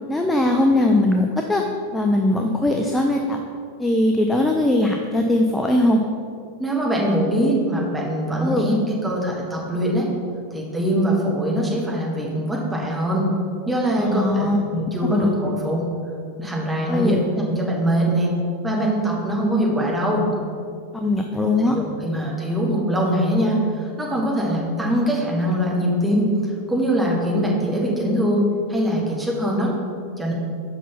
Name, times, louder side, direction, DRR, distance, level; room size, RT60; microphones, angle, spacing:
voice 1, 0.1-1.6 1.9-3.4 3.8-6.0 8.4-8.7 14.0-14.6 15.1-15.3 16.9-17.2 20.9-21.8, left 1 dB, 5° left, 2 dB, 0.4 m, -20 dB
voice 2, 6.6-10.1 10.5-13.3 13.7-15.9 16.4-18.3 18.6-20.2 21.6-26.3 26.7-29.7 30.2-30.3, equal, 10° right, -3 dB, 1.4 m, -22 dB
5.7 x 4.1 x 5.7 m, 2.3 s
figure-of-eight pair, 90°, 0 cm